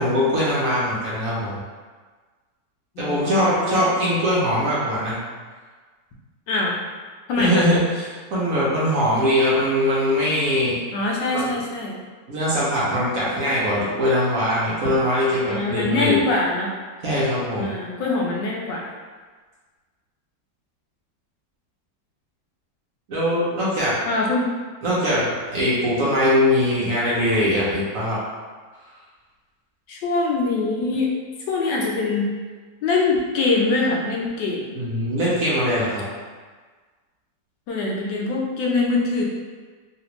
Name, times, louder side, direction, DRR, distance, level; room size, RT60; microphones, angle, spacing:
voice 1, 0.0-1.6 3.0-5.2 7.4-10.7 11.3-11.5 12.3-16.2 17.0-17.8 23.1-23.9 24.8-28.2 34.7-36.0, equal, 60° right, -7 dB, 1.1 m, -21 dB
voice 2, 3.0-3.9 6.5-6.7 7.3-7.7 10.9-12.0 15.5-16.7 17.6-18.8 24.0-24.5 29.9-31.1 31.5-32.3 32.8-34.7 37.7-39.2, left 3 dB, 85° left, -2 dB, 1.3 m, -23 dB
3.3 x 2.4 x 3.0 m, 1.4 s
omnidirectional pair, 1.9 m